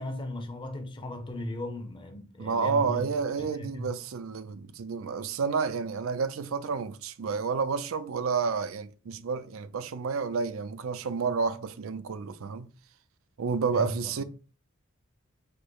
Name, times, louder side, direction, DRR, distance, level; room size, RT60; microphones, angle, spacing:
voice 1, 0.0-3.1 3.4-3.9 13.7-14.2, left 1 dB, 25° left, 0.6 m, -37 dB
voice 2, 2.4-12.7 13.4-14.2, right 5 dB, 75° right, 0.5 m, -30 dB
5.0 x 2.0 x 4.5 m
head